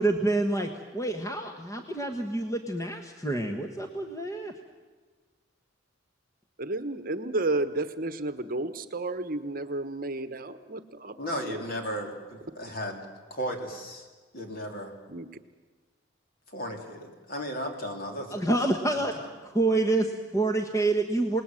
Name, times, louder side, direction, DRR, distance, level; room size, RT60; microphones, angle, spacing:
voice 1, 0.0-0.7 0.9-4.5 18.3-19.1 19.5-21.4, right 2 dB, 15° left, 4 dB, 1.3 m, -27 dB
voice 2, 6.6-11.2 11.5-11.6 15.1-15.3, right 2 dB, 45° right, 11 dB, 1.1 m, -32 dB
voice 3, 11.2-13.1 13.3-14.1 14.3-15.0 16.5-18.5 18.9-19.3, equal, 50° left, 3 dB, 3.7 m, -35 dB
28.0 x 19.5 x 7.7 m, 1.4 s
head